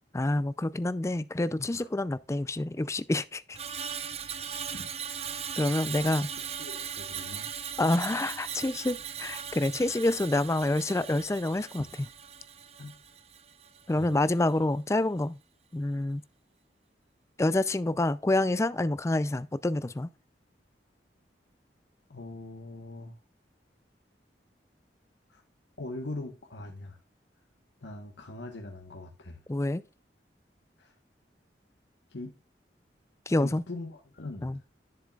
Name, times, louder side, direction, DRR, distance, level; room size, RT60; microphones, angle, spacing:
voice 1, 0.1-3.6 5.6-6.3 7.8-11.8 13.9-15.4 15.7-16.2 17.4-20.1 29.5-29.8 33.3-33.6 34.4-34.6, left 2 dB, 15° left, 0.4 m, -27 dB
Screech, 3.5-13.9 14.2-14.5, right 8 dB, 35° right, 0.7 m, -39 dB
voice 2, 6.6-7.5 12.8-13.0 13.9-14.2 22.1-23.2 25.3-25.4 25.8-27.0 27.8-29.4 30.8-30.9 32.1-32.3 33.4-34.6, left 2 dB, 85° left, 1.2 m, -41 dB
10.5 x 7.2 x 2.4 m
head